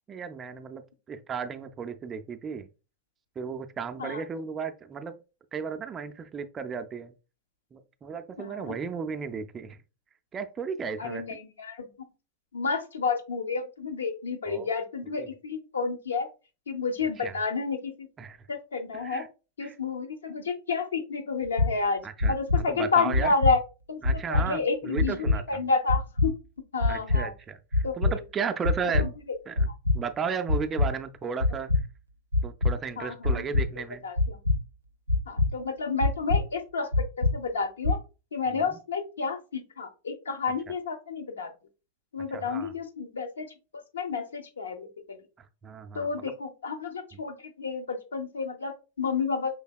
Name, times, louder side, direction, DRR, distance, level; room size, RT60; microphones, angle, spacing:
voice 1, 0.1-0.8 1.1-2.7 3.4-5.2 5.5-7.1 7.7-9.8 10.3-11.2 14.5-14.7 15.2-15.3 17.2-17.4 18.2-18.5 18.9-19.3 19.6-19.8 22.0-23.3 24.0-25.6 26.9-29.1 29.5-31.7 32.4-34.1 38.5-38.8 40.7-40.8 42.3-42.7 45.4-46.1, right 6 dB, 20° right, 0.4 m, -35 dB
voice 2, 8.4-8.7 11.0-11.9 12.5-16.3 16.7-18.1 18.5-19.2 19.6-22.0 22.3-23.6 23.9-24.0 24.3-26.3 26.7-27.3 27.8-28.2 29.0-29.1 33.0-34.4 35.3-38.0 38.3-41.5 42.1-43.5 43.7-45.2 45.9-49.5, left 4 dB, 70° left, 0.7 m, -30 dB
sound 1, 21.4-21.7 22.2-22.6 23.1-23.5 24.0-24.4 25.0-25.4 25.9-26.3 26.8-27.2 27.7-28.1 28.6-29.1 29.6-30.0 30.5-30.9 31.4-31.8 32.3-32.7 33.2-33.6 34.2-34.6 35.1-35.5 36.0-36.4 36.9-37.3 37.8-37.9, left 3 dB, 85° right, 0.4 m, -23 dB
5.2 x 3.3 x 2.3 m
figure-of-eight pair, 90°, 0 cm